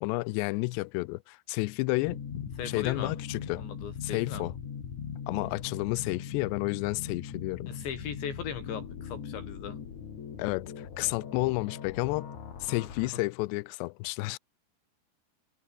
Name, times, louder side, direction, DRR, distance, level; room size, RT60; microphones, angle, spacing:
voice 1, 0.0-3.6 4.0-4.5 5.3-7.8 10.4-12.3 12.6-14.4, left 23 dB, 85° left, 2.5 m, -31 dB
sound 1, 2.0-13.1, left 7 dB, 45° left, 3.7 m, -40 dB
voice 2, 2.6-3.1 3.5-4.4 7.7-9.8, left 8 dB, 65° left, 6.1 m, -38 dB
omnidirectional pair, 5.6 m